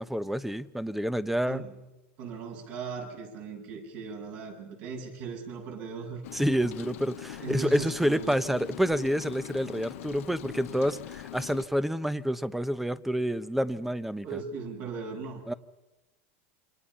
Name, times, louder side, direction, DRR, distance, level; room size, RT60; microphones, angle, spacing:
voice 1, 0.0-1.6 6.3-14.4 15.5-15.6, equal, 5° right, 14 dB, 0.9 m, -28 dB
voice 2, 2.2-6.2 7.4-8.4 14.2-15.4, right 4 dB, 60° right, 1 dB, 7.9 m, -38 dB
Rain, 6.2-11.7, left 15 dB, 80° left, 0.9 m, -42 dB
28.0 x 25.5 x 5.8 m, 0.97 s
supercardioid pair, 125°, 7 cm